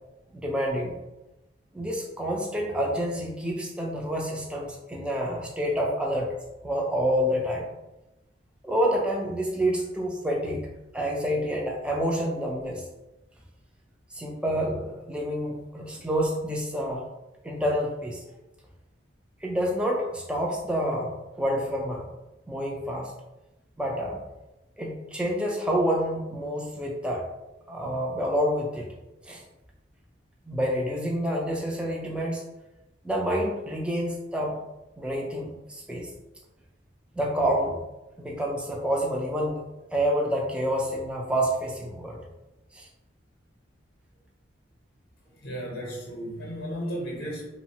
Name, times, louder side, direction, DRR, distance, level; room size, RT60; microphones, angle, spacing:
voice 1, 0.3-0.9 1.7-6.3 6.6-7.6 8.6-10.7 10.9-12.9 14.1-17.0 17.4-18.2 19.4-22.1 22.5-23.1 23.8-24.2 24.8-27.3 27.7-28.9 29.2-29.4 30.5-32.4 33.0-34.6 35.0-36.1 37.2-37.8 38.2-39.6 39.9-42.2 42.7-42.9, equal, 5° right, -2 dB, 0.3 m, -28 dB
voice 2, 45.4-47.5, equal, 50° left, -3 dB, 0.6 m, -34 dB
3.1 x 2.0 x 2.7 m, 1.0 s
head